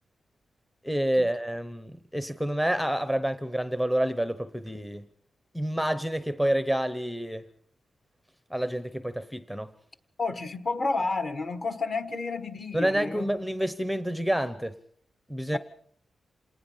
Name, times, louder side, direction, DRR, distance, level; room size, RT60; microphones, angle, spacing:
voice 1, 0.8-5.1 5.5-7.4 8.5-9.7 12.7-14.7 15.3-15.6, right 1 dB, ahead, 0.8 m, -28 dB
voice 2, 10.2-13.4 15.5-15.6, left 3 dB, 35° left, 1.4 m, -31 dB
27.5 x 19.0 x 5.6 m
wide cardioid pair, 140°, 0 cm